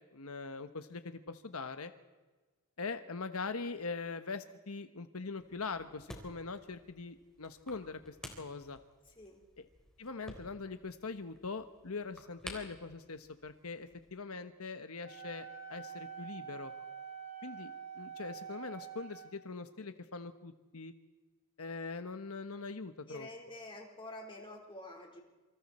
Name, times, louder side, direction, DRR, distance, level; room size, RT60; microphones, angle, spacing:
voice 1, 0.0-1.9 2.8-8.8 9.6-9.7 10.0-16.7 17.4-20.9 21.6-23.3, left 4 dB, 80° left, 9 dB, 1.1 m, -42 dB
sound 1, 5.4-14.1, left 1 dB, 5° left, 3.9 m, -53 dB
Wind instrument woodwind instrument, 15.0-19.2, right 7 dB, 60° right, 8.0 m, -46 dB
voice 2, 23.1-25.2, left 1 dB, 25° left, 1 dB, 4.0 m, -48 dB
27.5 x 26.0 x 4.3 m, 1.3 s
head